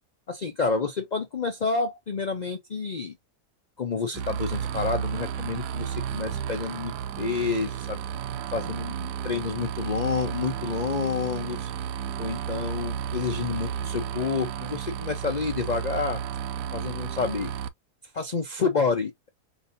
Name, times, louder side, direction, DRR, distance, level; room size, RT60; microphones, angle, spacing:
voice 1, 0.3-3.2 3.8-8.0 8.5-11.7 12.2-16.2 16.7-17.5 18.1-19.3, left 5 dB, 80° left, 0.4 m, -29 dB
sound 1, 4.1-17.7, right 8 dB, 80° right, 1.1 m, -32 dB
5.1 x 2.7 x 2.6 m
omnidirectional pair, 1.7 m